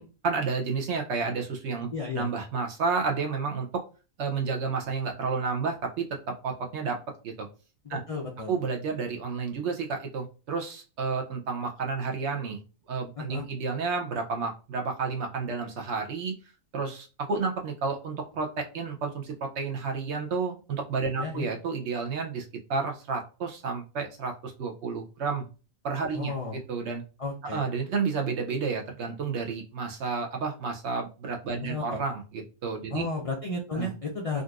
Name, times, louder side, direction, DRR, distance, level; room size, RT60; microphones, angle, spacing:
voice 1, 0.0-3.8 4.2-7.0 7.2-7.5 7.9-8.0 8.5-12.6 12.9-16.3 16.7-22.4 22.7-25.5 25.8-27.0 27.4-33.1 33.7-33.9, right 4 dB, 65° right, 2 dB, 0.9 m, -31 dB
voice 2, 1.9-2.3 7.8-8.5 13.2-13.4 21.2-21.5 26.1-26.6 27.2-27.6 31.6-32.0 32.9-34.4, left 3 dB, 65° left, 0 dB, 0.3 m, -33 dB
3.8 x 2.5 x 2.4 m, 0.33 s
omnidirectional pair, 1.4 m